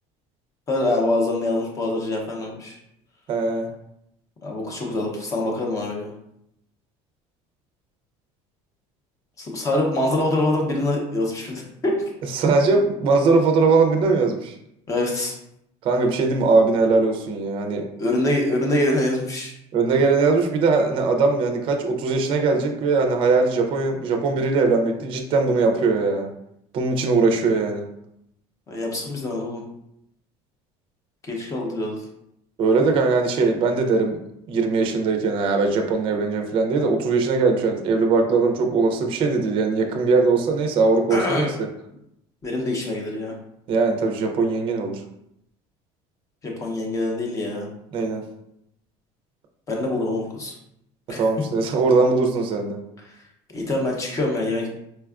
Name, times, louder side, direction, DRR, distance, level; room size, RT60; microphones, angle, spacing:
voice 1, 0.7-2.8 4.4-6.1 9.4-12.1 14.9-15.3 18.0-19.5 27.3-27.4 28.7-29.6 31.3-32.0 41.1-41.5 42.4-43.4 46.4-47.7 49.7-50.6 51.1-51.2 53.1-53.2 53.5-54.7, left 1 dB, 25° left, 0 dB, 0.6 m, -25 dB
voice 2, 3.3-3.7 12.3-14.6 15.8-17.9 19.7-26.3 26.7-27.8 32.6-34.2 34.5-41.7 43.7-45.0 47.9-48.2 51.1-52.8, right 4 dB, 40° right, 3 dB, 0.4 m, -20 dB
4.3 x 2.3 x 2.3 m, 0.78 s
cardioid pair, 155°, 14 cm